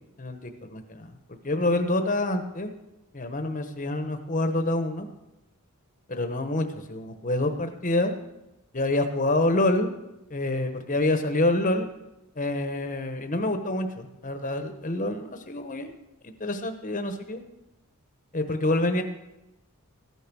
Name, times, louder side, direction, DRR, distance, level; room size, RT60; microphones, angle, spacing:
voice 1, 0.2-1.1 1.4-2.7 3.1-5.1 6.1-8.1 8.7-9.9 10.3-11.9 12.4-15.9 16.2-17.4 18.3-19.0, left 2 dB, 35° left, 7 dB, 1.1 m, -27 dB
15.0 x 8.9 x 6.1 m, 0.94 s
head